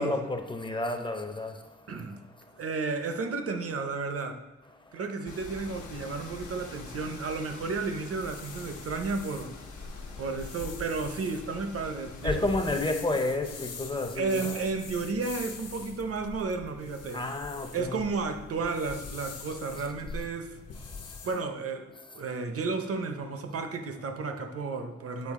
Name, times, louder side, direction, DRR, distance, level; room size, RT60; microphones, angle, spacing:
voice 1, 0.0-1.6 12.2-14.7 17.1-18.1, left 2 dB, 15° left, 0.6 m, -30 dB
voice 2, 1.9-2.2 2.6-4.4 4.9-9.5 10.2-12.5 14.1-17.2 17.7-20.6 21.2-25.3, right 4 dB, 50° right, 0.7 m, -32 dB
sound 1, 5.2-12.5, left 4 dB, 75° left, 1.0 m, -45 dB
sound 2, 8.1-21.4, left 4 dB, 55° left, 0.8 m, -43 dB
8.4 x 4.6 x 3.6 m
wide cardioid pair, 115°, 30 cm